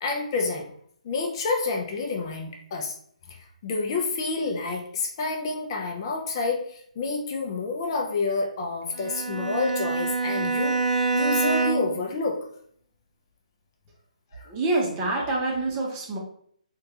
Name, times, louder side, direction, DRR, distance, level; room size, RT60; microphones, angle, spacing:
voice 1, 0.0-0.7 1.0-2.9 3.3-3.4 3.6-10.8 11.1-12.4 14.3-14.5, left 3 dB, 35° left, 1 dB, 0.5 m, -28 dB
Bowed string instrument, 8.9-12.1, right 4 dB, 85° right, 0.5 m, -26 dB
voice 2, 14.5-16.2, right 2 dB, 20° right, -1 dB, 0.7 m, -26 dB
3.7 x 2.3 x 2.7 m, 0.62 s
hypercardioid pair, 150°, 4 cm